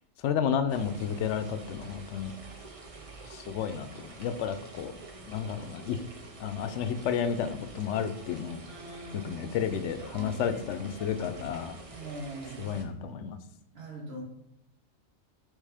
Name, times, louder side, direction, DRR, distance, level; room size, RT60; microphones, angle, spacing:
voice 1, 0.2-2.3 3.3-4.9 5.3-6.0 6.4-8.6 9.1-11.8 12.6-13.4, left 7 dB, 70° left, 9 dB, 0.9 m, -31 dB
sound 1, 0.7-12.8, right 3 dB, 35° right, 0.7 m, -48 dB
voice 2, 8.7-9.5 10.0-10.4 10.9-11.2 11.9-12.7 13.7-14.2, right 1 dB, 55° right, -1 dB, 1.6 m, -42 dB
5.4 x 3.6 x 4.9 m, 0.79 s
omnidirectional pair, 1.3 m